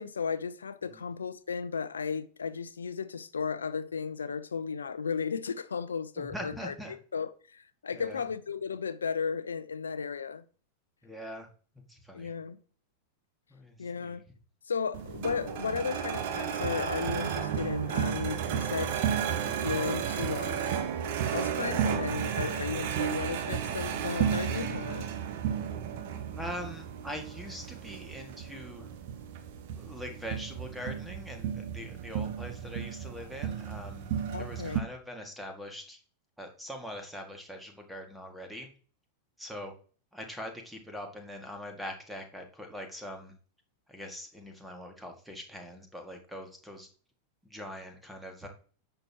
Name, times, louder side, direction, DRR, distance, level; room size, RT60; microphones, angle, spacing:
voice 1, 0.0-6.7 7.1-10.4 12.1-12.6 13.8-14.2 14.7-19.0 19.6-20.8 21.2-25.1 34.3-34.8, left 6 dB, 70° left, 0.6 m, -34 dB
voice 2, 6.2-7.0 7.9-8.2 11.0-11.5 11.9-12.3 13.5-14.2 26.3-28.9 29.8-34.1 34.4-36.0 36.4-38.7 39.4-39.7 40.1-43.3 43.9-46.9 47.4-48.5, equal, ahead, 2.0 m, -42 dB
sound 1, 14.9-34.8, right 8 dB, 50° right, 1.3 m, -33 dB
10.0 x 6.6 x 2.9 m
figure-of-eight pair, 90°, 0 cm